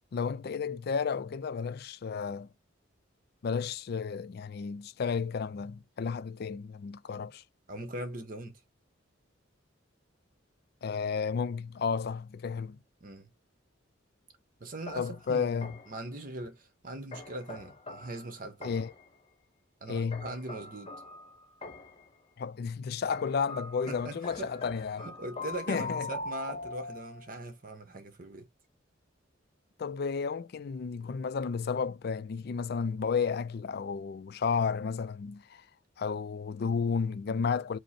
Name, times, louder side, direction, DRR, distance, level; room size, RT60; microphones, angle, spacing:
voice 1, 0.1-2.5 3.4-7.4 10.8-12.8 15.0-15.8 18.6-18.9 19.9-20.3 22.4-25.1 25.7-26.1 29.8-35.6 36.0-37.8, left 5 dB, 50° left, 0.4 m, -32 dB
voice 2, 7.7-8.6 13.0-13.3 14.6-18.7 19.8-20.9 23.9-24.6 25.0-28.5, right 2 dB, 45° right, 0.9 m, -41 dB
sound 1, 14.9-16.1 17.1-19.1 20.1-22.1 23.1-27.4, left 3 dB, 30° left, 0.9 m, -43 dB
5.2 x 2.0 x 4.2 m
head